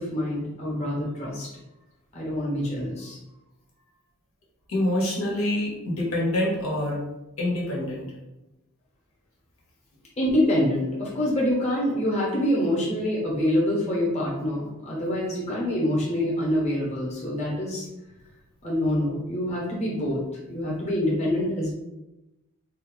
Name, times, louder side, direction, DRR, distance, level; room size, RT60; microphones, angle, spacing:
voice 1, 0.0-1.5 2.1-3.2 10.2-17.8 18.6-20.2 20.4-21.7, left 1 dB, 30° left, -4 dB, 1.0 m, -26 dB
voice 2, 4.7-7.0 7.4-8.1, left 1 dB, 75° left, -3 dB, 1.1 m, -26 dB
3.8 x 2.3 x 3.9 m, 0.96 s
head